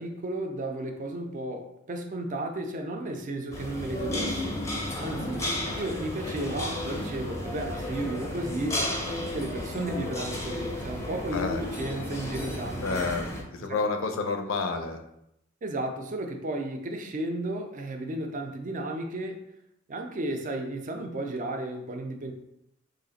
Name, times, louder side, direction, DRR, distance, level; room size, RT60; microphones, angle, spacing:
voice 1, 0.0-4.6 5.0-5.5 5.7-11.5 11.8-13.0 13.7-13.8 15.6-19.4 19.9-22.3, right 1 dB, 40° right, 4 dB, 0.4 m, -33 dB
sound 1, 3.5-13.4, left 1 dB, 15° left, 0.5 m, -33 dB
voice 2, 11.3-11.6 12.8-13.3 13.5-15.0, left 4 dB, 65° left, 5 dB, 0.5 m, -29 dB
3.1 x 2.4 x 3.9 m, 0.81 s
head